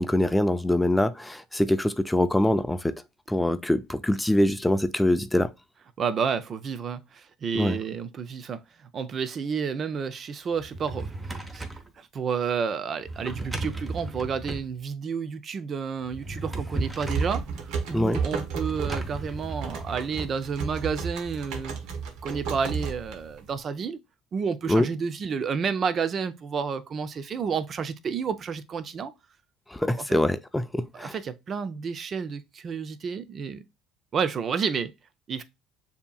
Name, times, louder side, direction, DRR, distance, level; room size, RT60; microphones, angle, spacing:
voice 1, 0.0-3.0 3.3-5.5 7.5-7.8 17.9-18.2 24.7-24.9 29.7-31.1, left 1 dB, 10° left, 0.4 m, -24 dB
voice 2, 6.0-11.6 12.0-21.8 22.2-24.0 24.3-29.1 29.8-30.1 30.9-33.7 34.1-34.9 35.3-35.4, right 6 dB, 45° right, 0.5 m, -30 dB
Drawer open or close, 10.6-11.9 13.0-14.7 16.0-17.4 18.7-20.3, right 2 dB, 15° right, 1.0 m, -35 dB
sound 1, 16.7-23.6, right 5 dB, 70° right, 1.0 m, -33 dB
6.8 x 2.9 x 2.3 m
supercardioid pair, 80°, 0 cm